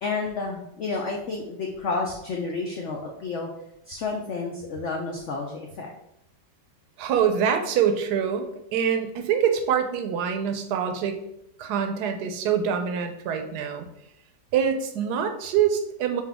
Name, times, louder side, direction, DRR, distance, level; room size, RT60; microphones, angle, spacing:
voice 1, 0.0-3.5 3.9-5.9, left 4 dB, 90° left, 1 dB, 0.6 m, -30 dB
voice 2, 7.0-11.2 11.6-13.9 14.5-16.2, right 8 dB, 70° right, 6 dB, 1.1 m, -25 dB
5.9 x 2.4 x 3.4 m, 0.80 s
omnidirectional pair, 2.0 m